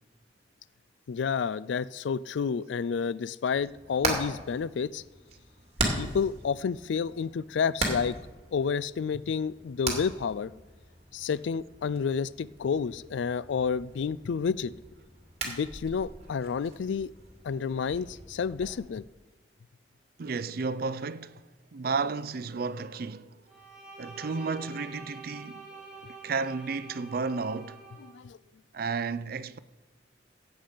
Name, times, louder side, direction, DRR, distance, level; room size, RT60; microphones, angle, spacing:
voice 1, 1.1-5.0 6.0-8.2 8.5-10.5 11.1-14.7 15.4-17.1 17.4-19.0 28.1-28.4, left 6 dB, 80° left, 0.4 m, -30 dB
Hammer, 3.5-18.8, right 2 dB, 35° right, 2.3 m, -38 dB
voice 2, 20.2-21.4 21.7-23.4 24.0-25.7 26.2-27.8 28.7-29.6, right 4 dB, 55° right, 0.5 m, -32 dB
Bowed string instrument, 23.5-28.1, right 3 dB, 5° right, 2.2 m, -47 dB
15.5 x 8.0 x 5.1 m
head